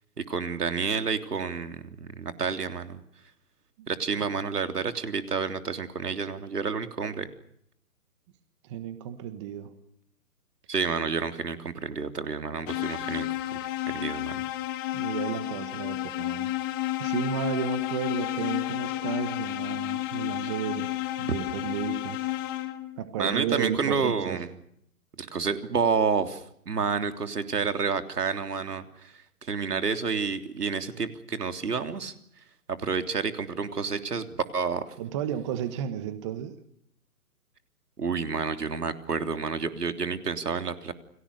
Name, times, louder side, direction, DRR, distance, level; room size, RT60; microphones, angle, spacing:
voice 1, 0.3-3.0 3.9-7.3 10.7-13.6 13.9-14.4 23.2-24.5 25.2-32.1 32.7-34.9 38.0-40.9, right 5 dB, 80° right, 8 dB, 3.4 m, -29 dB
voice 2, 8.6-9.7 14.9-16.5 17.0-20.9 21.2-22.3 23.0-24.4 35.0-36.5, right 10 dB, 20° right, 11 dB, 1.4 m, -33 dB
sound 1, 12.7-23.0, left 15 dB, 15° left, 1.1 m, -31 dB
29.5 x 23.0 x 6.6 m, 0.71 s
hypercardioid pair, 160°, 46 cm